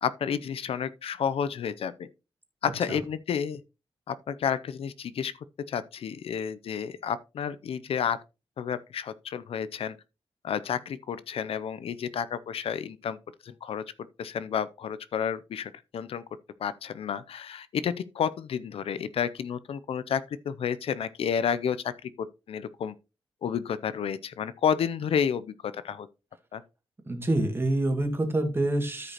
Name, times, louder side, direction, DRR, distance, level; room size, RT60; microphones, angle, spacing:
voice 1, 0.0-2.1 2.6-3.6 4.1-5.3 5.7-8.2 8.6-10.0 10.4-13.2 13.4-13.8 14.2-16.2 16.6-22.9 23.4-26.1 26.5-26.6, left 7 dB, 75° left, 0.5 m, -31 dB
voice 2, 27.0-29.1, right 1 dB, 25° right, 2.0 m, -26 dB
13.5 x 5.1 x 2.9 m
wide cardioid pair, 115°, 10 cm